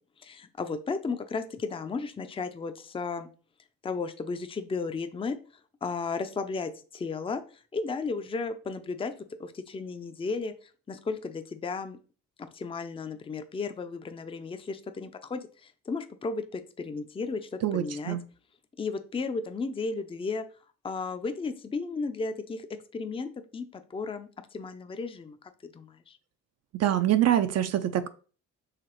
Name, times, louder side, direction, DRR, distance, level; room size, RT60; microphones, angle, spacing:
voice 1, 0.2-3.3 3.8-5.4 5.8-7.4 7.7-9.1 9.4-12.0 12.4-18.2 18.8-20.4 20.8-22.7 22.9-25.4 25.7-26.2, left 4 dB, 20° left, 9 dB, 0.4 m, -34 dB
voice 2, 17.6-18.2 26.8-28.1, right 11 dB, 60° right, 10 dB, 0.5 m, -25 dB
4.9 x 3.1 x 3.0 m, 0.38 s
cardioid pair, 90°, 30 cm